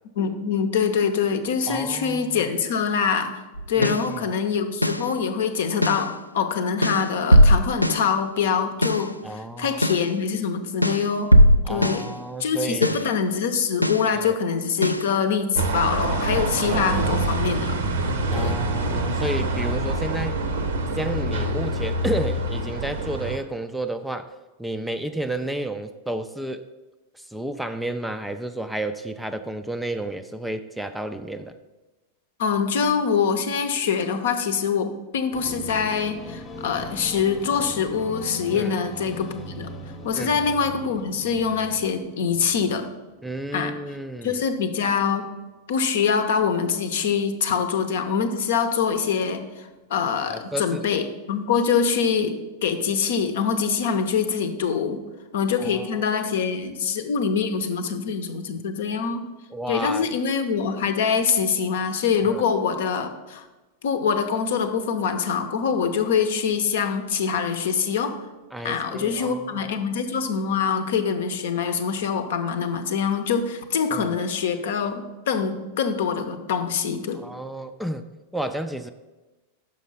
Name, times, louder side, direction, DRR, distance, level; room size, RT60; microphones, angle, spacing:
voice 1, 0.2-3.4 3.7-11.3 11.7-12.1 12.4-17.7 18.3-18.6 32.4-39.7 40.0-42.9 43.5-43.7 44.2-45.3 45.7-55.0 55.3-59.3 59.7-63.5 63.8-68.2 68.6-77.2, left 6 dB, 60° left, 8 dB, 0.7 m, -24 dB
voice 2, 1.7-2.4 3.8-4.2 9.2-9.8 11.6-13.0 14.1-14.4 18.3-20.4 20.9-24.3 24.6-26.6 27.1-31.5 38.5-38.7 40.1-40.3 43.2-44.4 50.3-50.9 55.6-56.1 59.5-60.1 62.2-62.4 68.5-69.7 73.9-74.1 77.1-78.0 78.3-78.9, right 1 dB, 5° right, 9 dB, 0.4 m, -31 dB
sound 1, 3.6-4.1 4.8-5.1 5.8-6.1 6.8-8.1 8.8-9.1 9.8-10.1 10.8-12.1 12.8-13.1 13.8-14.1 14.8-15.1, equal, 90° left, 0.3 m, -19 dB
sound 2, 15.6-23.4, right 2 dB, 65° right, 0.8 m, -25 dB
sound 3, 35.3-43.9, left 1 dB, 25° left, 0.8 m, -40 dB
6.3 x 5.3 x 5.5 m, 1.2 s
figure-of-eight pair, 90°, 0 cm